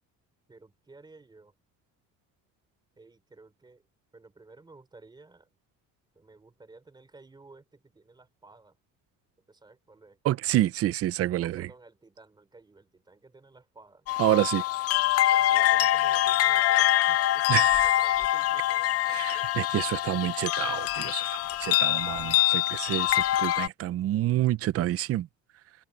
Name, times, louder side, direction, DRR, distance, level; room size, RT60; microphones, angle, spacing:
voice 1, 0.5-1.5 3.0-3.9 4.1-5.5 6.1-8.8 9.5-10.2 11.4-14.2 15.3-19.0 19.3-19.5, right 3 dB, 10° right, 3.9 m, -54 dB
voice 2, 10.2-11.7 14.2-14.6 17.5-17.9 19.1-25.3, right 14 dB, 40° right, 0.6 m, -28 dB
sound 1, 14.1-23.7, left 14 dB, 45° left, 0.6 m, -24 dB
cardioid pair, 175°, 35 cm